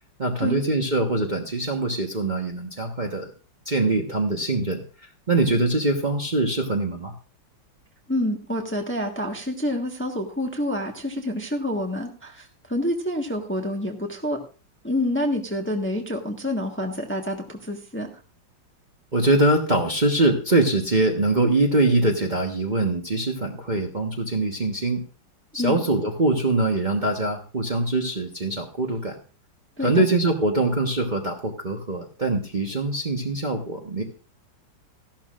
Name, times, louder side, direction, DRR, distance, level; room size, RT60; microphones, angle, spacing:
voice 1, 0.2-3.3 3.6-4.8 5.3-7.1 19.1-25.0 25.5-29.2 29.8-34.0, right 2 dB, 30° right, 1 dB, 1.2 m, -23 dB
voice 2, 8.1-14.4 14.8-18.1 25.6-25.8 29.8-30.1, left 1 dB, 5° left, 2 dB, 1.2 m, -28 dB
15.0 x 12.0 x 2.5 m, 0.35 s
omnidirectional pair, 2.0 m